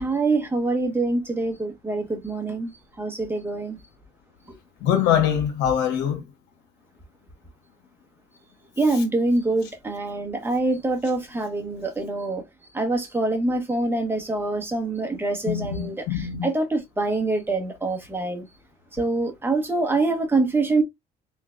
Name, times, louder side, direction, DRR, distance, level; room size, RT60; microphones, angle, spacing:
voice 1, 0.0-2.7 3.0-3.8 4.5-4.6 8.8-12.4 12.7-15.9 16.4-18.4 19.0-20.8, right 2 dB, 15° right, 1.3 m, -25 dB
voice 2, 4.8-6.2 15.5-16.5, left 9 dB, 90° left, 1.5 m, -23 dB
3.8 x 3.4 x 2.4 m
cardioid pair, 110°, 17 cm